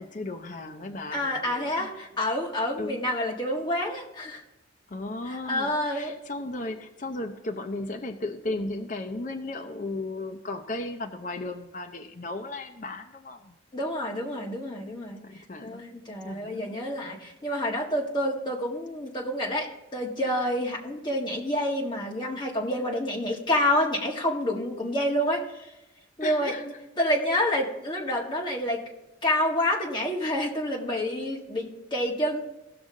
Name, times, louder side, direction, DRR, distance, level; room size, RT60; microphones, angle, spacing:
voice 1, 0.0-2.1 2.8-3.0 4.9-13.5 15.2-15.8 16.2-16.8 26.2-26.6, left 2 dB, 40° left, 4 dB, 0.6 m, -35 dB
voice 2, 1.1-4.4 5.3-6.2 13.7-25.7 26.2-28.8 29.2-32.4, left 1 dB, 25° left, -2 dB, 1.6 m, -28 dB
17.0 x 6.3 x 3.7 m, 0.96 s
head